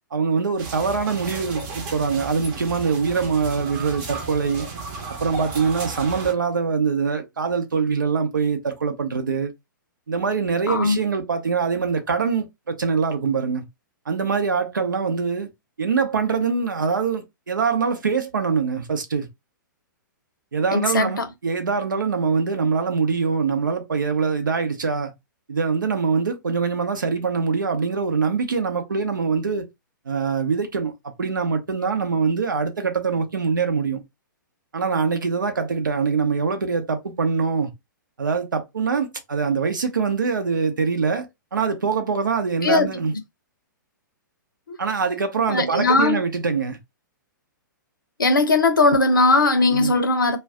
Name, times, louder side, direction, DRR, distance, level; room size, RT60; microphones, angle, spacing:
voice 1, 0.1-4.7 5.2-9.5 10.1-13.6 14.1-15.5 15.8-19.3 20.5-25.1 25.5-29.6 30.1-34.0 34.7-37.7 38.2-41.3 41.5-43.1 44.8-46.8 49.7-49.9, right 5 dB, 70° right, 0.7 m, -23 dB
sound 1, 0.6-6.3, right 4 dB, 35° right, 0.8 m, -34 dB
voice 2, 10.7-11.0 20.7-21.1 42.6-42.9 44.7-44.8 45.5-46.2 48.2-50.4, left 3 dB, 80° left, 0.6 m, -18 dB
2.3 x 2.2 x 3.5 m
figure-of-eight pair, 115°, 11 cm